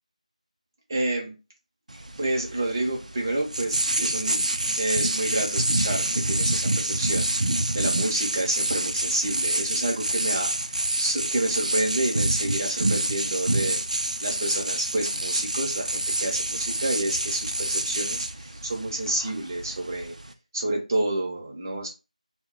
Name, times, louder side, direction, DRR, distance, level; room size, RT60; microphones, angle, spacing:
voice 1, 0.9-1.3 2.2-4.4 4.8-7.3 7.7-10.5 11.0-13.8 14.2-18.3 18.6-20.1 20.5-21.9, right 1 dB, 25° right, 0 dB, 0.7 m, -29 dB
sound 1, 1.9-20.3, right 1 dB, 70° right, 0.5 m, -27 dB
2.3 x 2.1 x 3.7 m, 0.28 s
figure-of-eight pair, 170°, 4 cm